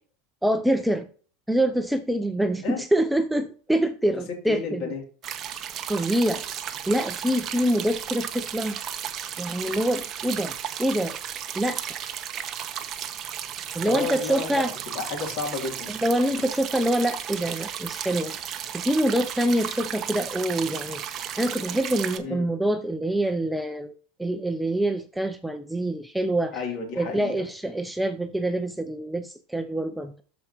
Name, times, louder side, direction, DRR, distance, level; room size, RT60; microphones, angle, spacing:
voice 1, 0.4-1.1 1.5-4.9 5.9-6.4 6.9-8.8 9.4-11.2 11.5-11.8 13.7-14.7 15.9-18.4 18.7-23.9 24.2-26.6 27.0-30.2, right 1 dB, ahead, 0.4 m, -25 dB
voice 2, 4.5-5.0 13.8-15.9 22.2-22.4 26.5-27.4, left 5 dB, 45° left, 2.8 m, -32 dB
sound 1, 5.2-22.2, right 9 dB, 30° right, 0.9 m, -34 dB
13.0 x 4.7 x 2.9 m
supercardioid pair, 160°, 0 cm